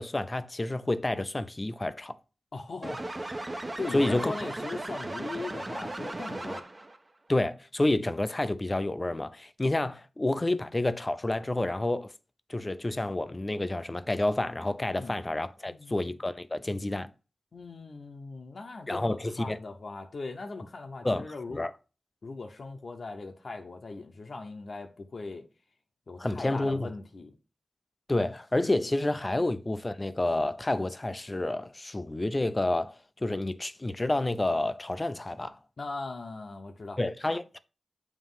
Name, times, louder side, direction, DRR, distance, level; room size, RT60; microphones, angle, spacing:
voice 1, 0.0-2.2 3.9-4.3 7.3-12.1 12.5-17.1 18.9-19.6 21.0-21.7 26.2-26.9 28.1-35.6 37.0-37.6, left 2 dB, 25° left, 0.5 m, -29 dB
voice 2, 2.5-3.0 3.8-6.6 15.0-15.2 15.7-16.0 17.5-21.6 22.2-25.5 26.1-27.4 35.8-37.0, left 3 dB, 65° left, 0.9 m, -39 dB
sound 1, 2.8-7.0, right 1 dB, 30° right, 0.9 m, -36 dB
7.4 x 3.0 x 5.6 m
wide cardioid pair, 70°, 0 cm